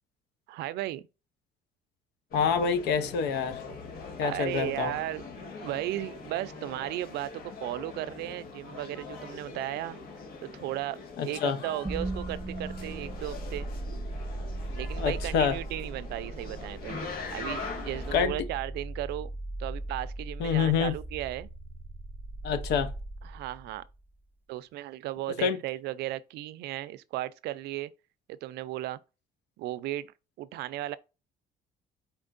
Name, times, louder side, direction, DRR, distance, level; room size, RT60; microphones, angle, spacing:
voice 1, 0.5-1.0 4.2-5.2 5.6-10.0 10.4-13.7 14.7-17.0 17.3-19.3 19.6-21.5 23.2-23.8 24.5-27.9 28.3-29.0 29.6-30.1 30.4-31.0, right 15 dB, 80° right, 0.4 m, -35 dB
voice 2, 2.3-3.6 4.2-4.9 11.2-11.6 14.9-15.6 18.1-18.4 20.4-20.9 22.4-22.9 25.4-25.6, left 7 dB, 80° left, 0.8 m, -27 dB
sound 1, 2.3-18.2, left 4 dB, 60° left, 1.6 m, -42 dB
sound 2, 11.8-24.0, right 2 dB, 10° right, 0.3 m, -38 dB
4.5 x 4.3 x 2.5 m
cardioid pair, 110°, 17 cm